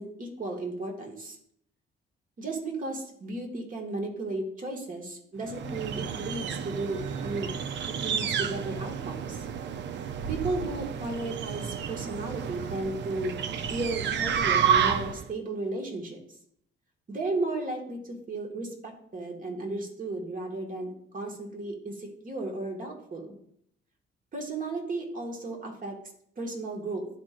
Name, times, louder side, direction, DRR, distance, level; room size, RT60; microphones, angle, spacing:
voice 1, 0.0-1.4 2.4-7.5 8.0-9.5 10.3-13.3 13.7-16.2 17.1-23.3 24.3-26.0 26.4-27.1, right 2 dB, 45° right, 1 dB, 1.8 m, -34 dB
sound 1, 5.5-15.3, right 7 dB, 65° right, 0.6 m, -30 dB
11.0 x 4.5 x 2.5 m, 0.68 s
cardioid pair, 90°, 20 cm